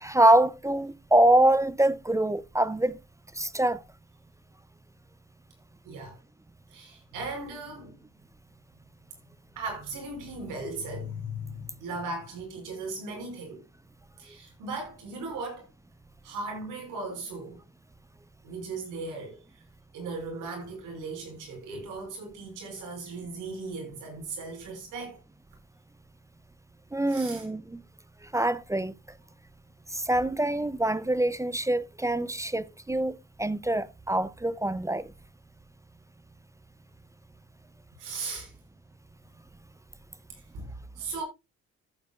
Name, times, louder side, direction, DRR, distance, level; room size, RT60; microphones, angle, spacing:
voice 1, 0.0-3.0 3.4-3.8 26.9-27.8 28.3-28.9 29.9-35.0, right 1 dB, 10° right, 0.5 m, -24 dB
voice 2, 5.8-6.2 6.7-7.9 9.6-13.6 14.2-15.7 16.2-17.6 18.4-19.6 19.9-25.2 27.1-27.5 38.0-38.5 40.3-40.7 41.0-41.2, right 3 dB, 90° right, 5.7 m, -37 dB
14.5 x 8.5 x 2.3 m
cardioid pair, 90°, 30 cm